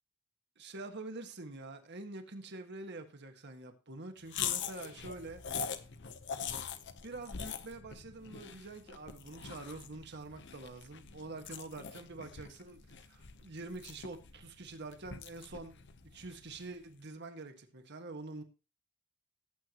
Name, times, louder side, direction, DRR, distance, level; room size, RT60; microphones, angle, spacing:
voice 1, 0.6-5.4 7.0-18.4, right 2 dB, 55° right, 1.6 m, -46 dB
sound 1, 4.3-16.8, left 7 dB, 60° left, 0.9 m, -43 dB
18.0 x 7.9 x 3.0 m
head